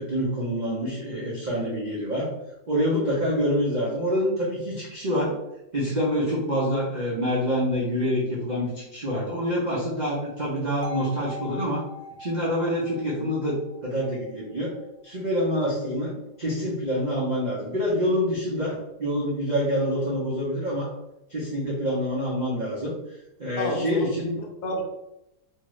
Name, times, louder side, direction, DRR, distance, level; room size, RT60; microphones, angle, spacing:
voice 1, 0.0-2.3 2.7-5.4 5.7-11.8 12.2-13.6 13.8-14.7 15.0-16.1 16.4-20.9 21.3-22.9 23.4-24.3, equal, 65° right, -6 dB, 0.4 m, -26 dB
sound 1, 10.8-14.8, left 2 dB, 85° right, 1.3 m, -42 dB
voice 2, 23.6-24.8, left 1 dB, 75° left, 1 dB, 1.1 m, -29 dB
2.8 x 2.4 x 3.0 m, 0.87 s
omnidirectional pair, 1.8 m